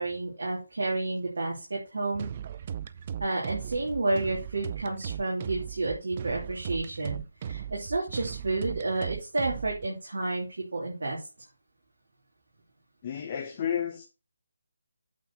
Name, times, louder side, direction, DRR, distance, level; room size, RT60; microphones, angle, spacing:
voice 1, 0.0-2.3 3.2-11.2, right 2 dB, 75° right, 3.0 m, -31 dB
sound 1, 2.1-9.9, right 9 dB, 35° right, 0.5 m, -37 dB
voice 2, 13.0-14.0, left 8 dB, 35° left, 1.0 m, -31 dB
8.4 x 4.2 x 5.7 m
figure-of-eight pair, 155°, 0 cm